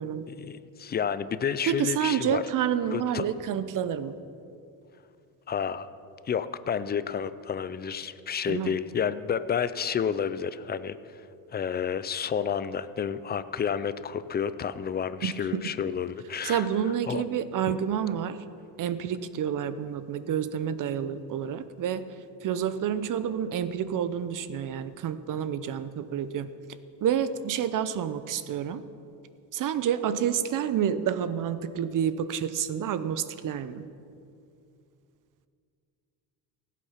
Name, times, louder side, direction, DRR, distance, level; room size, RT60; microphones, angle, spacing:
voice 1, 0.3-2.4 2.9-3.3 5.5-5.9 6.3-11.3 11.5-16.7 17.1-17.2 17.7-17.8, left 7 dB, 25° left, 14 dB, 0.4 m, -30 dB
voice 2, 1.6-4.1 8.5-8.7 15.2-15.6 16.4-18.4 18.8-22.0 22.4-26.5 27.0-28.8 29.5-33.9, right 9 dB, 50° right, 13 dB, 0.7 m, -29 dB
15.5 x 8.4 x 5.8 m, 2.5 s
cardioid pair, 130°, 40 cm